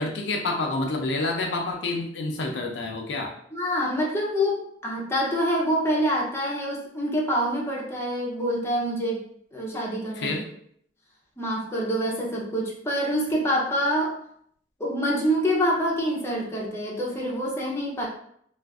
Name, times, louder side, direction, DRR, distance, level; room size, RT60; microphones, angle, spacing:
voice 1, 0.0-3.3 10.2-10.4, left 2 dB, 75° left, 1 dB, 0.5 m, -28 dB
voice 2, 3.5-9.2 9.5-10.4 11.4-14.2 14.8-18.1, equal, 15° left, -3 dB, 0.7 m, -26 dB
2.4 x 2.4 x 3.5 m, 0.66 s
head